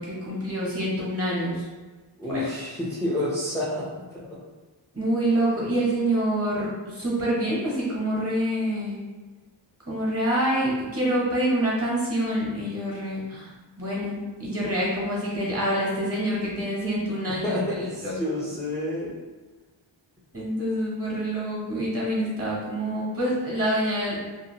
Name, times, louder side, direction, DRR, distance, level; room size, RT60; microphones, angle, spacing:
voice 1, 0.0-1.6 2.3-2.4 4.9-9.0 9.9-13.5 13.8-18.2 20.3-24.3, right 1 dB, 30° right, -5 dB, 1.1 m, -26 dB
voice 2, 2.2-4.4 17.3-19.1, left 1 dB, 5° left, -7 dB, 0.5 m, -29 dB
2.7 x 2.5 x 2.8 m, 1.3 s
wide cardioid pair, 85°, 47 cm